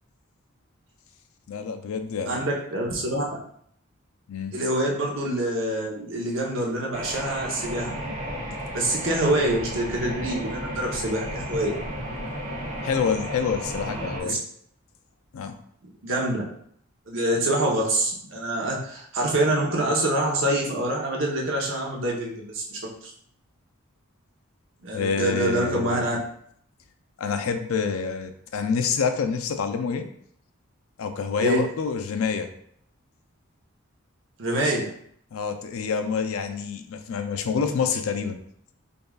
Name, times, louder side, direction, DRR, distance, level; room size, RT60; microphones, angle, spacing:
voice 1, 1.5-2.4 4.3-4.6 12.8-14.4 15.3-15.6 24.9-26.1 27.2-30.1 31.0-32.5 35.3-38.4, left 6 dB, 85° left, 7 dB, 0.4 m, -27 dB
voice 2, 2.3-3.2 4.5-8.0 8.7-11.7 14.2-14.4 16.0-16.5 17.1-22.8 24.8-26.2 31.4-31.6 34.4-34.9, right 1 dB, 65° right, -2 dB, 0.8 m, -26 dB
sound 1, 6.9-14.2, equal, 30° right, 1.3 m, -33 dB
5.2 x 2.4 x 2.3 m, 0.66 s
head